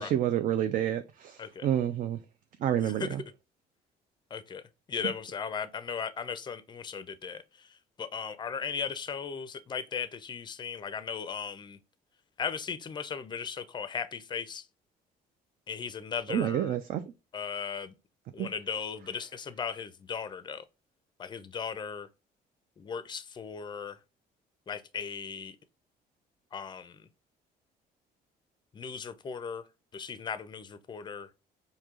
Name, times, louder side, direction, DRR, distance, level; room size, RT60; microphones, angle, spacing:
voice 1, 0.0-2.2 2.6-3.2 16.3-17.0 18.4-18.5, right 10 dB, 55° right, 0.4 m, -29 dB
voice 2, 4.3-4.6 4.9-7.7 8.0-11.8 12.4-14.7 15.7-16.8 17.3-17.9 18.3-20.6 21.2-22.1 22.8-24.0 24.7-25.6 26.5-27.1 28.7-29.6 29.9-31.3, left 6 dB, 25° left, 0.4 m, -37 dB
4.5 x 2.7 x 2.3 m
cardioid pair, 110°, 17 cm